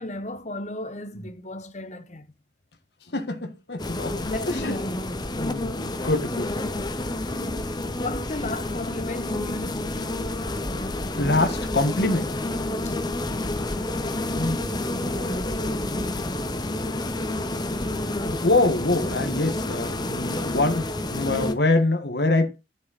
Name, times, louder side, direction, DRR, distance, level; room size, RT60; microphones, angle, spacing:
voice 1, 0.0-2.2 4.3-5.0 7.3-10.1 12.8-13.1, left 2 dB, 35° left, 1.2 m, -34 dB
voice 2, 3.1-4.8 5.4-6.5 11.2-12.3 14.2-16.6 17.4-22.6, left 2 dB, 60° left, 1.6 m, -26 dB
sound 1, 3.8-21.5, left 1 dB, 20° left, 0.8 m, -29 dB
11.0 x 6.4 x 4.1 m
head